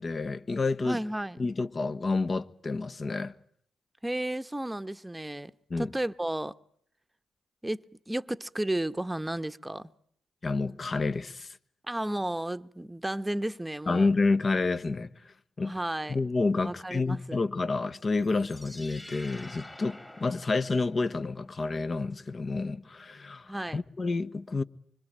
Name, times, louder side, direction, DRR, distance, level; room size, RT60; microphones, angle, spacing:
voice 1, 0.0-1.0 1.4-3.3 5.7-5.9 10.4-11.6 13.9-15.1 15.6-15.7 16.1-24.6, left 3 dB, 40° left, 1.3 m, -29 dB
voice 2, 0.8-1.4 4.0-5.5 5.8-6.5 7.6-9.9 11.9-14.1 15.6-16.2 16.6-17.4 23.5-23.8, right 1 dB, 10° right, 1.1 m, -33 dB
sound 1, 18.1-21.3, left 1 dB, 15° left, 2.2 m, -48 dB
25.5 x 25.0 x 9.0 m
hypercardioid pair, 45°, 0 cm